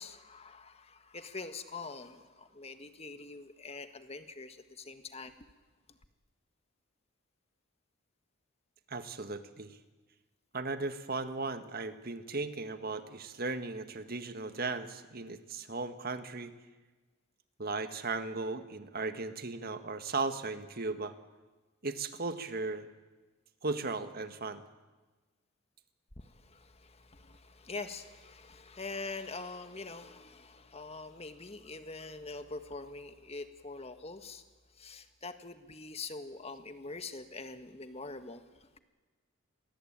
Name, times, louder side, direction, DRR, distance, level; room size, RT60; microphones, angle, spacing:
voice 1, 0.0-5.5 26.2-34.4 34.8-38.4, left 3 dB, 30° left, 9 dB, 1.6 m, -44 dB
voice 2, 8.9-9.8 10.5-16.5 17.6-21.1 21.8-22.9 23.6-24.6, right 3 dB, 45° right, 9 dB, 1.7 m, -36 dB
29.0 x 22.5 x 8.9 m, 1.3 s
head